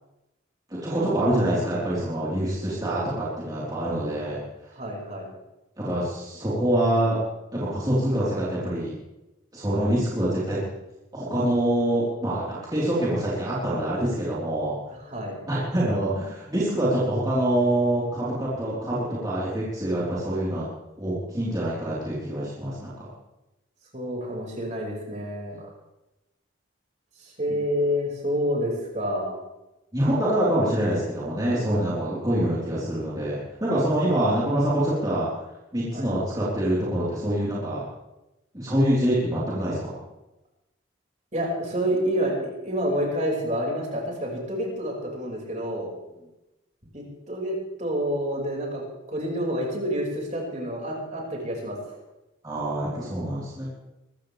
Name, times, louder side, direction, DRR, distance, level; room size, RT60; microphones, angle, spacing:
voice 1, 0.8-4.4 5.8-7.2 7.5-9.0 9.5-10.6 11.1-14.7 15.5-20.7 21.0-23.1 29.9-35.3 35.7-37.9 38.5-40.0 52.4-53.7, right 1 dB, 20° right, -9 dB, 4.1 m, -25 dB
voice 2, 4.8-5.3 9.7-9.9 15.1-15.4 23.9-25.7 27.2-29.4 34.1-34.2 35.9-36.1 41.3-45.9 46.8-48.8 49.1-51.8, equal, 35° right, -2 dB, 5.5 m, -28 dB
24.0 x 15.0 x 3.4 m, 0.98 s
head